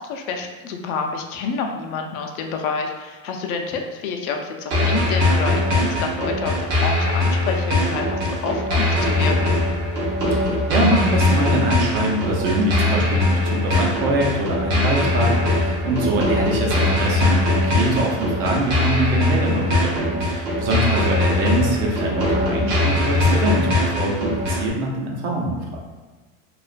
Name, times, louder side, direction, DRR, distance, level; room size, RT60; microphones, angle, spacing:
voice 1, 0.0-9.6 20.8-21.1, left 5 dB, 80° left, 3 dB, 0.5 m, -28 dB
sound 1, 4.7-24.7, left 1 dB, 30° right, 0.4 m, -21 dB
voice 2, 10.3-25.8, right 1 dB, 80° right, -1 dB, 0.8 m, -24 dB
2.4 x 2.1 x 2.4 m, 1.3 s
supercardioid pair, 160°, 42 cm